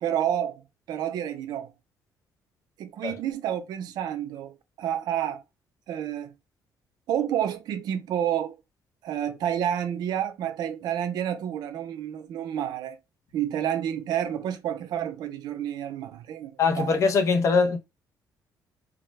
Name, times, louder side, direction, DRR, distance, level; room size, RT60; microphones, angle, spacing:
voice 1, 0.0-1.7 2.8-5.4 5.9-6.3 7.1-8.6 9.0-13.0 13.3-16.9, right 10 dB, 70° right, 0.5 m, -29 dB
voice 2, 16.6-17.8, left 4 dB, 45° left, 0.5 m, -22 dB
2.4 x 2.1 x 3.1 m
cardioid pair, 140°, 7 cm